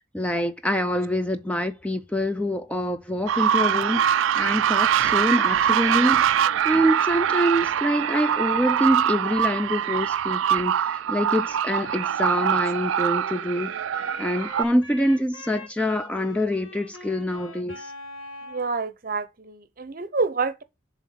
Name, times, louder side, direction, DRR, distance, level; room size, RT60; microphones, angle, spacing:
voice 1, 0.1-6.3 6.6-13.7 14.2-17.9, equal, 5° left, 0.4 m, -25 dB
sound 1, 3.3-14.7, right 9 dB, 80° right, 0.3 m, -23 dB
Wind instrument woodwind instrument, 11.8-18.7, left 1 dB, 90° left, 1.9 m, -42 dB
voice 2, 18.4-20.6, right 4 dB, 45° right, 0.7 m, -28 dB
7.2 x 3.6 x 5.6 m
head